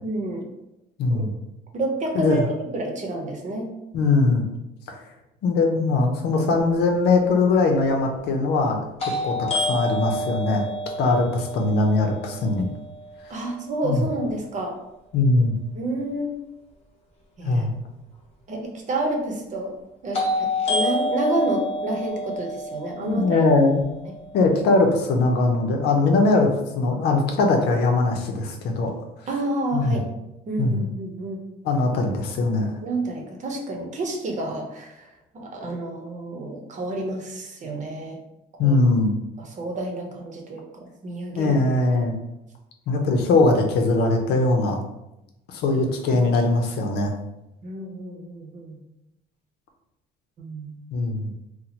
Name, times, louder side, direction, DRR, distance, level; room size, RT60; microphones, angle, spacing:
voice 1, 0.0-0.5 1.1-1.2 1.7-3.7 5.4-5.6 6.0-6.5 13.3-14.7 15.7-16.3 17.4-17.7 18.5-19.7 20.0-23.4 29.3-30.0 30.5-31.4 32.8-35.1 35.3-38.2 38.6-38.8 39.4-41.6 46.1-46.3 47.6-48.8 50.4-50.8, right 2 dB, 45° right, 1 dB, 0.8 m, -29 dB
voice 2, 1.0-1.3 2.1-2.5 3.9-4.5 5.4-8.9 9.2-12.6 13.8-14.0 15.1-15.5 17.4-17.7 23.0-23.8 24.3-28.9 29.7-30.0 30.6-30.9 31.6-32.7 38.6-39.1 41.3-42.1 42.9-44.8 45.5-47.1 50.9-51.3, left 3 dB, 75° left, 3 dB, 0.7 m, -21 dB
sound 1, 7.0-7.1 9.0-12.9 20.1-24.2, left 1 dB, 40° left, 1.1 m, -28 dB
2.9 x 2.2 x 4.1 m, 0.91 s
cardioid pair, 110°, 17 cm